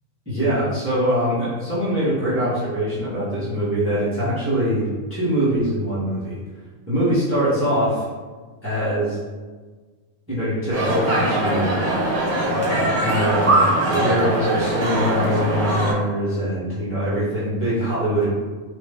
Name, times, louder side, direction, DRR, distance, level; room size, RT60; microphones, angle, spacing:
voice 1, 0.3-6.4 6.9-8.0 8.6-9.2 10.3-11.9 12.5-18.3, equal, 10° right, -10 dB, 1.0 m, -23 dB
sound 1, 10.7-15.9, right 1 dB, 40° right, 1.3 m, -21 dB
3.9 x 2.6 x 3.5 m, 1.4 s
omnidirectional pair, 1.4 m